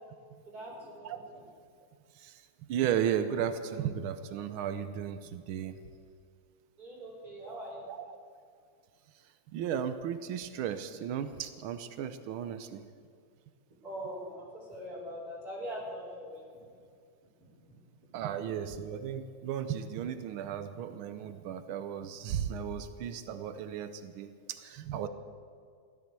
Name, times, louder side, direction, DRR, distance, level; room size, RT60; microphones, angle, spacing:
voice 1, 0.5-1.3 6.8-7.8 13.8-16.4 17.7-17.8, equal, 45° right, -6 dB, 5.3 m, -42 dB
voice 2, 2.1-5.8 7.4-7.5 7.9-8.0 9.5-12.8 18.1-25.1, right 9 dB, 90° right, 10 dB, 1.6 m, -35 dB
16.0 x 12.5 x 6.8 m, 2.3 s
omnidirectional pair, 2.2 m